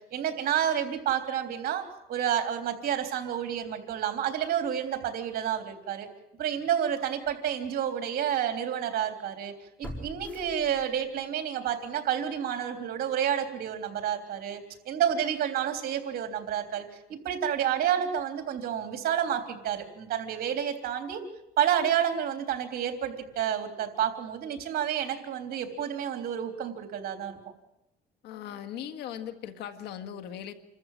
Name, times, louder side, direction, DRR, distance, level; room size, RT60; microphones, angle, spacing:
voice 1, 0.1-6.1 6.4-9.5 9.8-21.2 21.6-27.4, right 9 dB, 60° right, 6 dB, 3.4 m, -30 dB
sound 1, 6.5-6.7 7.2-7.3 9.8-11.3 11.6-11.7, equal, 10° left, 4.8 m, -43 dB
voice 2, 28.2-30.5, left 9 dB, 80° left, 7 dB, 1.8 m, -39 dB
27.0 x 14.0 x 9.1 m, 0.90 s
cardioid pair, 110°, 17 cm